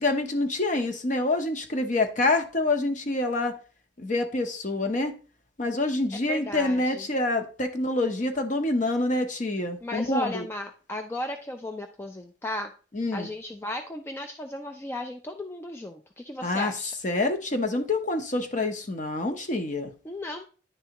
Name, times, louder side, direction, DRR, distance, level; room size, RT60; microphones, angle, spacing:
voice 1, 0.0-3.5 4.0-5.2 5.6-10.4 12.9-13.3 16.4-16.7 17.0-19.9, left 2 dB, 40° left, 0.7 m, -26 dB
voice 2, 6.3-7.1 9.8-12.7 13.1-16.9 20.0-20.4, left 1 dB, 15° left, 0.3 m, -35 dB
10.0 x 3.4 x 2.8 m
head